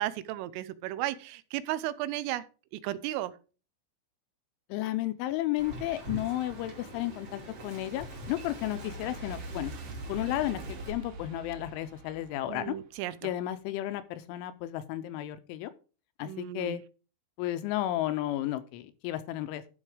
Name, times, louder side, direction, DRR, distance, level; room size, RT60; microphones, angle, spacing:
voice 1, 0.0-2.4 2.8-3.3 12.5-13.1 16.3-16.8, right 14 dB, 85° right, 3.3 m, -34 dB
voice 2, 4.7-9.7 10.1-12.8 13.2-15.7 16.2-16.8 17.4-19.7, left 14 dB, 80° left, 3.0 m, -33 dB
Wind, 5.6-10.9, right 1 dB, 35° right, 2.6 m, -44 dB
sound 1, 6.3-13.1, right 1 dB, 55° right, 3.8 m, -45 dB
12.0 x 5.3 x 5.0 m
omnidirectional pair, 5.8 m